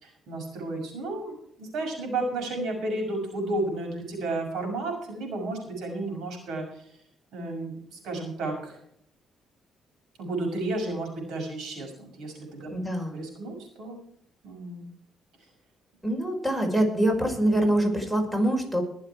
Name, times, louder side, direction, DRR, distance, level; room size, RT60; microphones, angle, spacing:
voice 1, 0.0-6.8 7.3-8.8 10.2-12.7 13.1-14.0 14.4-14.8, right 2 dB, 80° right, 2 dB, 5.9 m, -32 dB
voice 2, 12.7-13.2 16.0-18.8, right 1 dB, 5° right, 2 dB, 5.1 m, -24 dB
21.5 x 7.4 x 4.6 m, 0.68 s
cardioid pair, 90°, 0 cm